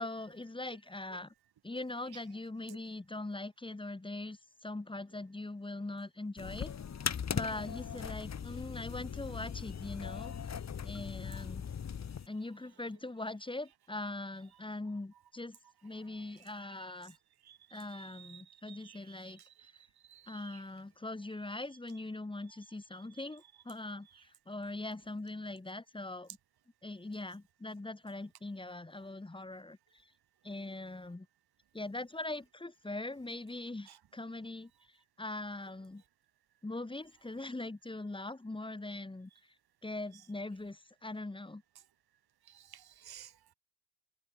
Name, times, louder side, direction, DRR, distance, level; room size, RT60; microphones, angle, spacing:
voice 1, 0.0-1.3 1.6-6.7 7.3-11.7 12.3-15.6 15.8-17.2 17.7-19.7 20.3-26.4 26.8-30.1 30.4-31.3 31.7-36.0 36.6-39.3 39.8-41.6, left 2 dB, 10° left, 4.4 m, -42 dB
sound 1, 6.4-12.3, left 7 dB, 35° left, 3.2 m, -39 dB
voice 2, 17.4-20.6 23.1-23.3 24.1-24.2 33.9-34.0 42.5-43.5, right 10 dB, 50° right, 6.6 m, -55 dB
cardioid pair, 130°, 47 cm